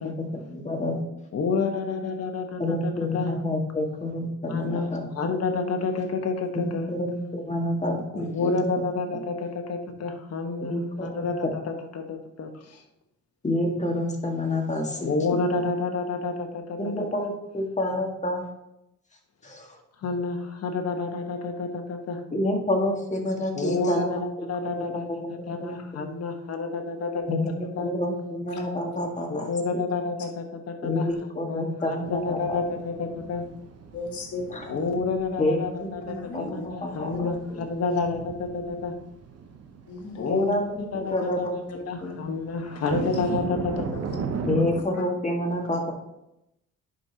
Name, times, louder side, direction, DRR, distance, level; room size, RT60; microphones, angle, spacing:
voice 1, 0.2-1.3 2.6-5.1 6.5-8.7 10.7-11.3 13.4-15.4 16.8-18.4 19.4-19.8 22.3-25.8 26.0-26.1 27.3-29.8 30.8-32.6 34.5-34.7 35.4-37.6 40.3-42.2 44.5-45.9, left 1 dB, 25° left, 1 dB, 1.8 m, -29 dB
voice 2, 1.3-3.3 4.5-6.9 8.1-10.7 11.0-12.8 14.9-16.9 20.0-22.2 23.5-27.4 27.8-27.9 29.3-31.1 31.4-33.4 34.7-38.9 40.2-41.4 41.9-44.2, left 4 dB, 55° left, 4 dB, 1.3 m, -29 dB
sound 1, 32.0-44.8, right 5 dB, 55° right, 0.9 m, -37 dB
voice 3, 33.9-34.7 36.2-37.3 37.9-38.0 39.9-40.5 41.1-41.5 42.8-43.2 44.6-44.7, left 3 dB, 70° left, 1 dB, 1.8 m, -37 dB
10.5 x 5.3 x 2.9 m, 0.86 s
cardioid pair, 90°, 30 cm